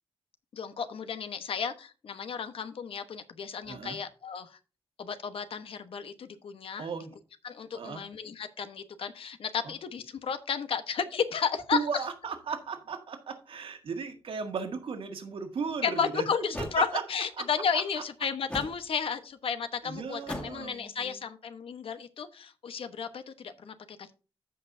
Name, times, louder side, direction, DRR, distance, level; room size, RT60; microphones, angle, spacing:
voice 1, 0.5-4.6 5.0-6.9 7.4-12.0 15.8-24.1, left 6 dB, 80° left, 10 dB, 1.1 m, -33 dB
voice 2, 3.7-4.0 6.8-7.2 7.7-8.0 9.6-9.7 11.7-16.2 16.8-17.0 17.4-17.5 19.8-21.2, right 5 dB, 75° right, 6 dB, 1.8 m, -35 dB
sound 1, 15.6-15.7 16.5-16.8 18.5-18.8 20.2-20.6, left 1 dB, 15° left, 1.8 m, -37 dB
14.5 x 5.6 x 2.7 m, 0.33 s
wide cardioid pair, 160°, 9 cm